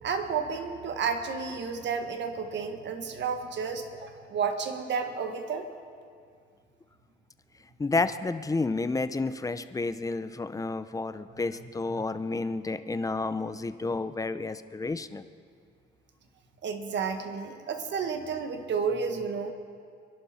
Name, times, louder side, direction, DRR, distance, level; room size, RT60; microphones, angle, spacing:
voice 1, 0.0-5.7 11.9-12.0 16.6-19.5, right 5 dB, 65° right, 6 dB, 1.6 m, -31 dB
voice 2, 7.8-15.2, left 3 dB, 15° left, 12 dB, 0.7 m, -30 dB
24.0 x 11.5 x 4.4 m, 2.2 s
cardioid pair, 90°, 20 cm